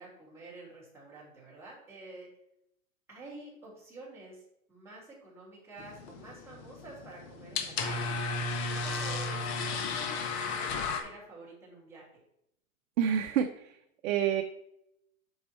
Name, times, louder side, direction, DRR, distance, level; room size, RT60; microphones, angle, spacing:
voice 1, 0.0-2.3 3.1-4.4 4.7-8.2 8.6-12.1, right 2 dB, 5° right, -6 dB, 3.3 m, -49 dB
sound 1, 5.8-11.0, left 3 dB, 50° left, 1.3 m, -34 dB
voice 2, 13.0-13.7 14.0-14.4, right 9 dB, 60° right, 5 dB, 0.8 m, -28 dB
7.3 x 5.6 x 4.5 m, 0.78 s
supercardioid pair, 145°, 42 cm